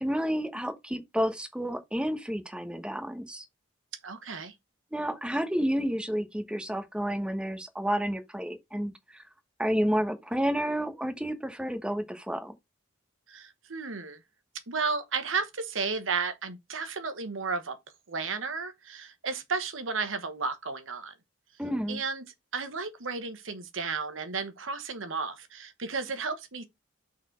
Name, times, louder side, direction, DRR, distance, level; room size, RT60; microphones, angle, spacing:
voice 1, 0.0-3.4 4.9-9.2 9.6-12.5 21.6-22.0, equal, 5° right, 1.1 m, -30 dB
voice 2, 4.0-4.5 13.3-14.2 14.7-17.8 18.1-21.1 21.9-22.2 22.5-26.6, right 4 dB, 80° right, 1.2 m, -33 dB
6.3 x 4.2 x 4.5 m
head